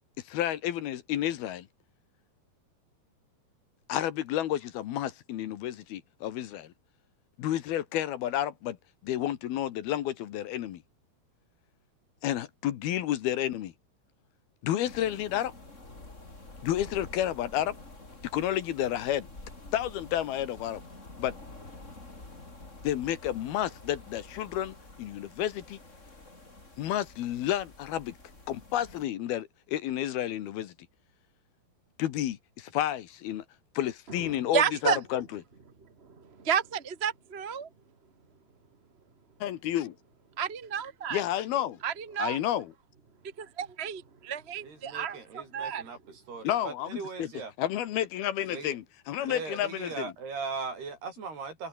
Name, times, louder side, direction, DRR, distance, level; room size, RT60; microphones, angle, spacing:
voice 1, 0.2-1.7 3.9-6.7 7.4-8.8 9.0-10.8 12.2-13.7 14.6-15.5 16.6-17.8 18.3-19.3 19.7-20.8 21.2-21.4 22.8-25.8 26.8-28.1 28.5-30.7 32.0-33.4 33.7-35.2 39.4-39.9 41.1-41.8 42.2-42.7 46.4-47.3 47.6-50.1, left 12 dB, 70° left, 3.2 m, -31 dB
sound 1, 14.8-29.0, left 2 dB, 15° left, 4.7 m, -48 dB
voice 2, 34.2-35.0 36.0-37.7 40.4-41.2 41.8-42.4 43.4-46.0, right 7 dB, 35° right, 1.0 m, -31 dB
voice 3, 44.6-46.0 46.3-47.5 48.5-48.8 49.2-51.7, right 4 dB, 70° right, 8.8 m, -39 dB
omnidirectional pair, 4.7 m